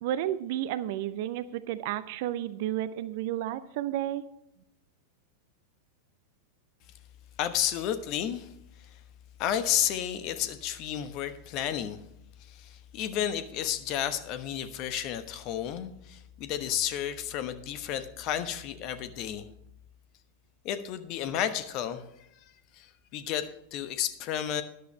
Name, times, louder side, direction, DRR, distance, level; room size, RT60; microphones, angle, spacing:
voice 1, 0.0-4.2, right 12 dB, 50° right, 14 dB, 0.6 m, -32 dB
voice 2, 7.4-8.5 9.4-12.0 12.4-19.5 20.6-22.0 22.7-24.6, left 10 dB, 40° left, 11 dB, 1.1 m, -32 dB
13.0 x 11.0 x 3.2 m, 0.84 s
figure-of-eight pair, 90°, 0 cm